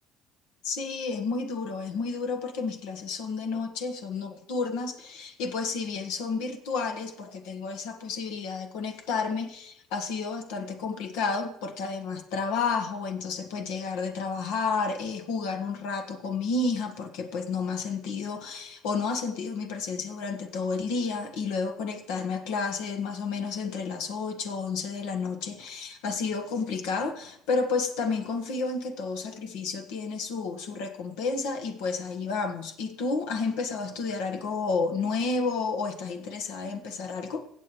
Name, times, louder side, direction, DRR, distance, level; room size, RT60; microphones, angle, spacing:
voice 1, 0.6-37.4, left 4 dB, 85° left, 1.4 m, -31 dB
17.0 x 7.5 x 3.2 m
cardioid pair, 110°, 0 cm